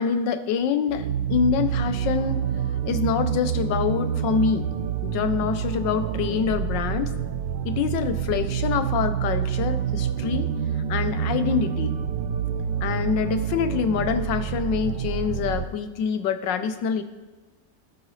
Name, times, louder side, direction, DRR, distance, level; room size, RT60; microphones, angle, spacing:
voice 1, 0.0-2.4 2.9-4.7 5.0-7.1 7.6-10.5 10.9-11.9 12.8-17.0, left 7 dB, 85° left, 9 dB, 1.4 m, -25 dB
sound 1, 0.9-15.6, right 8 dB, 85° right, 1.3 m, -27 dB
17.0 x 7.6 x 3.2 m, 1.3 s
omnidirectional pair, 1.9 m